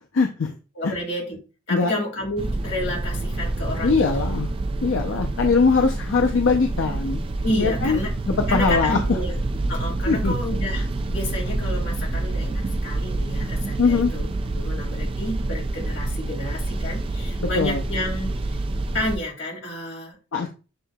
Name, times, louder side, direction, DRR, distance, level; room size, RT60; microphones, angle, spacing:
voice 1, 0.1-0.5 0.8-0.9 1.7-1.9 3.8-4.5 4.8-7.2 7.6-9.2 10.1-10.3 13.8-14.1 17.4-17.8 20.3-20.5, left 4 dB, 80° left, 4 dB, 0.5 m, -21 dB
voice 2, 0.8-1.4 1.7-4.1 7.4-8.1 8.5-9.4 9.7-18.6 18.9-20.2, left 1 dB, 60° left, -2 dB, 2.3 m, -30 dB
sound 1, 2.4-19.1, right 2 dB, 25° right, 0.3 m, -27 dB
7.5 x 2.8 x 2.2 m, 0.33 s
head